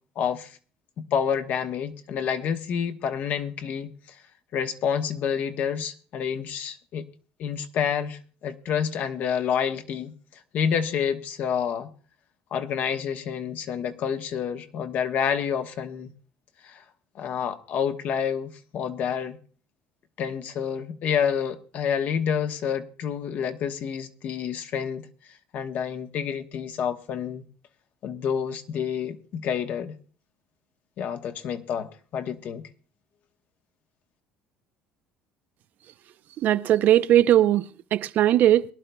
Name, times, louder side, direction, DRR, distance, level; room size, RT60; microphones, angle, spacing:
voice 1, 0.2-0.6 1.1-3.9 4.5-7.1 7.4-10.1 10.5-11.9 12.5-16.1 16.6-16.8 17.1-19.4 20.2-25.1 25.5-27.4 28.0-29.9 31.0-32.6, left 7 dB, 55° left, 1.0 m, -28 dB
voice 2, 36.4-38.7, right 12 dB, 55° right, 0.5 m, -19 dB
22.5 x 11.5 x 2.3 m
supercardioid pair, 105°, 4 cm